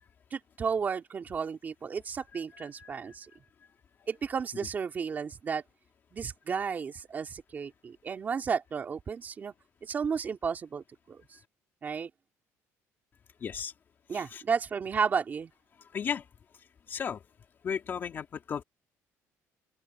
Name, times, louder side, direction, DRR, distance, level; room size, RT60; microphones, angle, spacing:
voice 1, 0.3-3.3 4.1-5.6 6.1-9.5 9.8-11.2 11.8-12.1 14.1-15.5, right 6 dB, 30° right, 2.9 m, -33 dB
voice 2, 2.6-3.0 13.4-13.7 14.1-14.4 15.9-16.2 16.9-17.2 17.6-18.6, left 7 dB, 35° left, 2.3 m, -35 dB
open air
cardioid pair, 150°, 6 cm